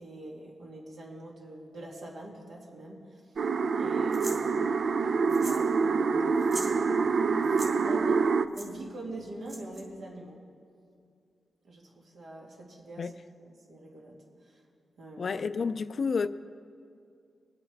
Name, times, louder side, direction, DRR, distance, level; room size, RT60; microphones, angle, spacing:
voice 1, 0.0-3.4 3.8-10.4 11.6-14.6 15.0-15.3, right 1 dB, 80° right, 2.3 m, -45 dB
sound 1, 3.4-8.5, right 4 dB, 60° right, 0.4 m, -26 dB
sound 2, 4.1-4.4 5.3-5.7 5.9-6.0 6.4-6.7 7.4-7.7 8.5-8.7 9.5-9.8, right 1 dB, 30° right, 2.6 m, -40 dB
voice 2, 15.2-16.3, left 5 dB, 55° left, 0.4 m, -30 dB
22.0 x 8.7 x 3.4 m
wide cardioid pair, 100°, 0 cm